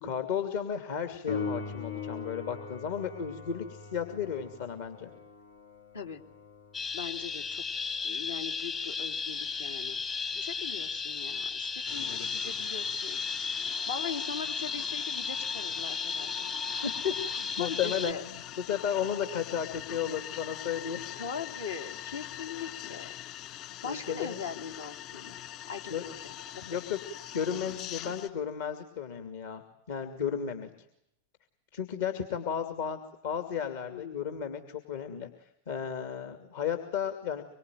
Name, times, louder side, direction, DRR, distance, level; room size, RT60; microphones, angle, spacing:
voice 1, 0.0-5.1 16.8-21.0 23.8-24.4 25.9-26.0 26.7-27.0 27.3-30.7 31.7-33.0 33.2-37.4, left 8 dB, 55° left, 7 dB, 2.5 m, -34 dB
Piano, 1.3-11.7 19.2-19.3, left 4 dB, 90° left, 6.4 m, -42 dB
sound 1, 6.7-18.1, left 5 dB, 20° left, 1.2 m, -34 dB
voice 2, 6.9-7.6 8.0-10.0 10.3-13.2 13.6-16.5 17.6-18.2 21.2-23.1 23.8-25.3 25.7-25.9 26.2-26.6 33.9-34.2, left 6 dB, 70° left, 3 dB, 3.1 m, -40 dB
sound 2, 11.8-28.3, left 11 dB, 40° left, 2.9 m, -43 dB
25.0 x 24.0 x 9.4 m, 0.78 s
figure-of-eight pair, 90°, 0 cm